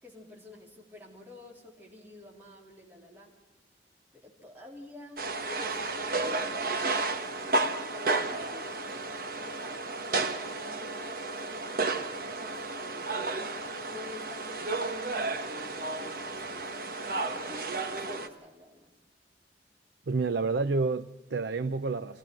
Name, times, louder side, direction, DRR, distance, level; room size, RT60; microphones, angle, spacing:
voice 1, 0.0-3.3 4.1-8.9 9.3-13.6 13.9-18.9, left 2 dB, 10° right, 3.5 m, -50 dB
sound 1, 5.2-18.3, right 3 dB, 55° right, 1.5 m, -32 dB
voice 2, 20.1-22.2, right 3 dB, 80° right, 0.6 m, -29 dB
25.0 x 17.0 x 6.1 m
head